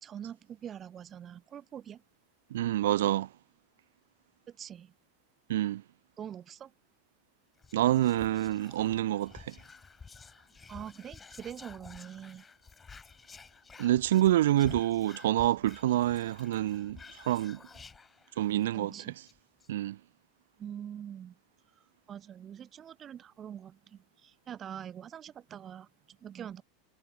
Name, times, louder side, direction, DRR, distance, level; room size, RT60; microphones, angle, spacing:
voice 1, 0.0-2.0 4.5-4.9 6.2-6.7 10.7-12.4 18.7-19.2 20.6-21.3 22.1-26.6, right 9 dB, 30° right, 1.6 m, -44 dB
voice 2, 2.5-3.3 5.5-5.8 7.7-9.6 13.8-17.0 17.3-17.6 18.4-18.9 19.7-20.0, right 14 dB, 80° right, 0.7 m, -27 dB
Whispering, 7.6-18.6 19.0-19.1 19.3-19.7, left 5 dB, 20° left, 2.1 m, -51 dB
hypercardioid pair, 105°, 0 cm